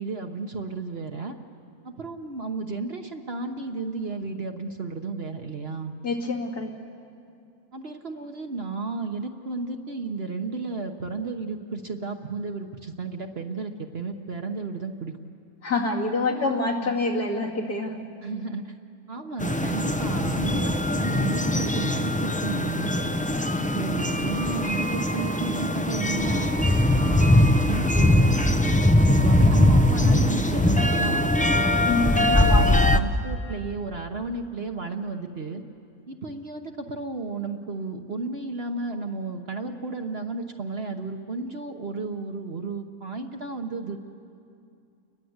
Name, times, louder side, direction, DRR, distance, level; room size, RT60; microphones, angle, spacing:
voice 1, 0.0-1.4 1.8-5.9 7.7-15.2 16.3-16.9 18.2-18.7 19.1-23.1 23.7-26.5 26.9-28.3 28.6-28.8 29.1-31.7 32.3-35.6 36.1-44.0, right 3 dB, 45° right, 5 dB, 1.2 m, -33 dB
voice 2, 6.0-6.7 15.6-18.0 31.8-32.6, left 3 dB, 70° left, -2 dB, 3.0 m, -26 dB
sound 1, 19.4-33.0, left 1 dB, 10° left, 0.4 m, -21 dB
29.5 x 21.0 x 8.0 m, 2.6 s
omnidirectional pair, 1.7 m